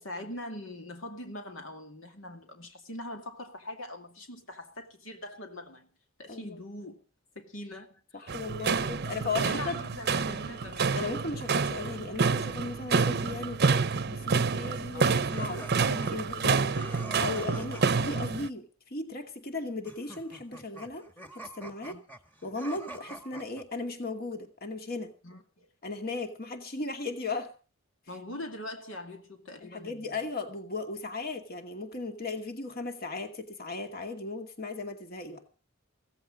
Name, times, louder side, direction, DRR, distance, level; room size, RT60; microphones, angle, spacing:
voice 1, 0.0-5.9 6.2-7.0 7.4-8.4 9.3-11.0 14.9-15.4 21.9-22.0 25.2-25.7 28.1-30.2, left 1 dB, 75° left, 2.4 m, -42 dB
voice 2, 6.3-6.6 8.1-9.8 11.0-21.0 21.4-22.0 22.4-25.1 25.8-27.5 29.6-35.4, left 3 dB, 50° left, 2.4 m, -36 dB
sound 1, 8.3-18.5, right 5 dB, 55° right, 0.7 m, -28 dB
sound 2, 15.3-18.1 19.8-23.6, right 2 dB, 10° left, 1.8 m, -46 dB
16.5 x 15.5 x 5.0 m
head